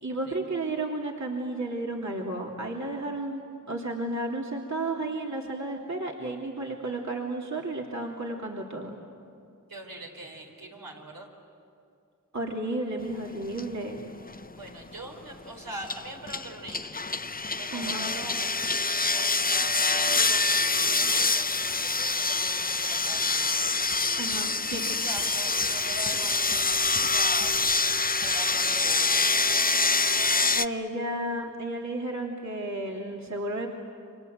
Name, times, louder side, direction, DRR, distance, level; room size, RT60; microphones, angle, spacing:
voice 1, 0.0-8.9 12.3-14.0 17.7-18.1 24.2-24.8 30.5-33.7, right 2 dB, 55° right, -2 dB, 2.8 m, -32 dB
voice 2, 9.7-11.3 14.6-17.0 17.5-18.7 19.5-21.5 21.8-23.5 24.7-27.8 28.2-29.0, right 2 dB, 85° right, 0 dB, 4.6 m, -42 dB
sound 1, 13.6-13.7 14.2-14.6 15.8-30.7, left 3 dB, 25° left, 0.6 m, -26 dB
29.5 x 25.0 x 8.0 m, 2.5 s
wide cardioid pair, 45°, 33 cm